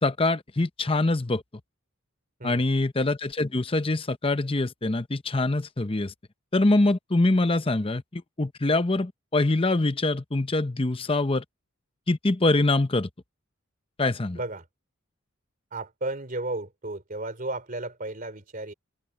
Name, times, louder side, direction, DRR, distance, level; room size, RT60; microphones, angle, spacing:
voice 1, 0.0-1.4 2.4-6.1 6.5-11.4 12.1-13.1 14.0-14.4, left 2 dB, 25° left, 0.8 m, -24 dB
voice 2, 14.3-14.7 15.7-18.7, right 2 dB, 40° right, 3.4 m, -34 dB
head